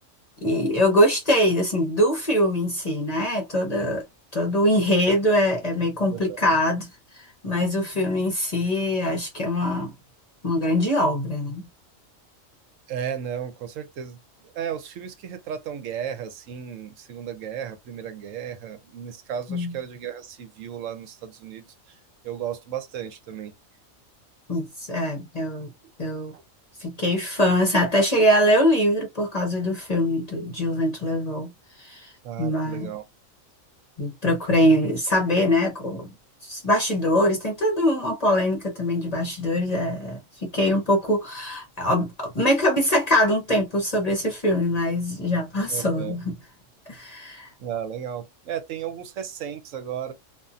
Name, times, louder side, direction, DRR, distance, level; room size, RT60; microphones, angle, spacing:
voice 1, 0.4-4.0 4.3-9.9 10.4-11.6 19.5-19.7 24.5-25.7 26.0-26.3 26.8-31.5 31.8-32.1 32.4-32.9 34.0-36.1 36.4-46.4 46.9-47.5, left 1 dB, 40° left, 0.7 m, -23 dB
voice 2, 6.1-6.5 12.9-14.2 14.4-22.0 22.2-23.5 26.3-26.4 32.2-33.0 45.7-46.2 47.6-50.1, right 9 dB, 75° right, 1.0 m, -34 dB
2.7 x 2.4 x 2.4 m
omnidirectional pair, 1.4 m